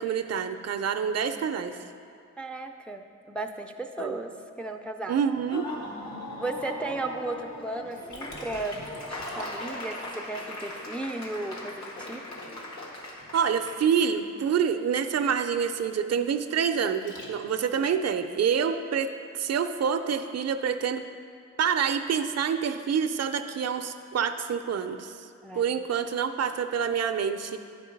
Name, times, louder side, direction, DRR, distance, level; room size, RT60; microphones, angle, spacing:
voice 1, 0.0-1.8 4.0-4.2 5.1-5.6 13.3-21.0 21.6-25.2 25.6-27.6, right 7 dB, 60° right, 9 dB, 0.4 m, -27 dB
voice 2, 2.4-4.3 4.6-5.2 6.4-8.8 9.4-12.2 25.4-25.7, right 2 dB, 5° left, 4 dB, 0.3 m, -35 dB
Laughter / Applause, 5.4-13.8, left 1 dB, 70° left, 1.2 m, -39 dB
Liquid, 8.1-17.7, left 1 dB, 85° left, 1.4 m, -50 dB
10.5 x 4.7 x 5.1 m, 2.3 s
wide cardioid pair, 145°, 29 cm